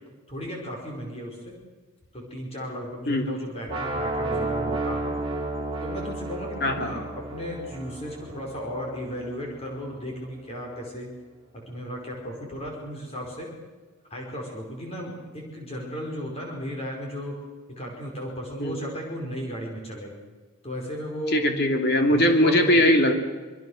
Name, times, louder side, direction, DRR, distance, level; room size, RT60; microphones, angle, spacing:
voice 1, 0.3-1.6 2.1-5.2 5.8-11.1 11.5-13.5 14.1-20.1 20.6-21.5 22.0-22.8, equal, 30° left, -1 dB, 5.2 m, -35 dB
sound 1, 3.7-9.6, right 2 dB, 25° right, 3.7 m, -32 dB
voice 2, 21.3-23.1, left 1 dB, 50° left, 5 dB, 2.8 m, -20 dB
26.0 x 22.5 x 6.6 m, 1.3 s
head